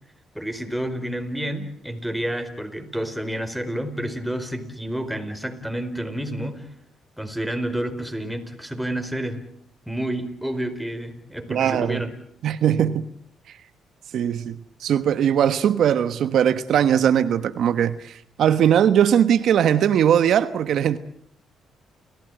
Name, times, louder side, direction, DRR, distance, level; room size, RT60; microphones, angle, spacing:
voice 1, 0.3-6.7 7.2-9.4 9.9-12.1, right 1 dB, ahead, 4.6 m, -29 dB
voice 2, 11.5-12.0 12.4-13.1 13.5-13.6 14.1-21.0, right 9 dB, 70° right, 1.2 m, -20 dB
29.5 x 16.5 x 9.1 m
cardioid pair, 90°, 0 cm